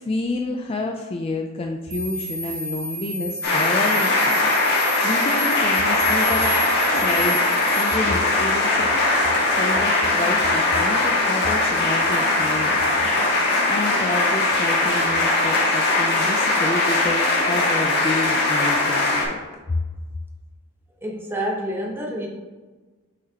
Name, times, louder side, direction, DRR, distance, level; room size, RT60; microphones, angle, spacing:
voice 1, 0.0-6.6 6.9-7.4 7.7-8.9 9.5-13.0 13.7-19.4 19.7-19.8, left 2 dB, 25° left, 2 dB, 0.3 m, -29 dB
sound 1, 1.9-7.9, right 2 dB, 80° right, 1.7 m, -32 dB
sound 2, 3.4-19.2, left 2 dB, 50° left, 1.6 m, -20 dB
voice 2, 21.0-22.3, equal, 10° right, -1 dB, 0.9 m, -28 dB
6.1 x 5.8 x 2.9 m, 1.3 s
head